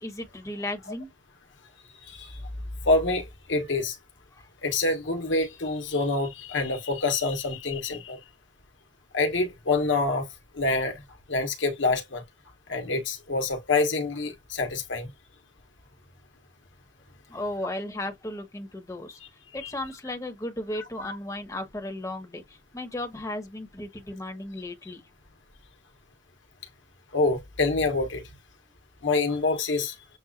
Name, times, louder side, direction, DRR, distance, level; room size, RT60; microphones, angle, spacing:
voice 1, 0.0-1.1 17.3-19.2 19.5-22.4 22.7-25.0, left 1 dB, 15° left, 1.4 m, -35 dB
voice 2, 2.1-2.4 2.8-4.0 4.6-8.2 9.1-10.3 10.5-11.0 11.3-12.2 12.7-15.1 19.6-19.7 21.0-21.2 27.1-28.2 29.0-29.9, left 3 dB, 90° left, 1.4 m, -26 dB
7.5 x 2.5 x 2.4 m
head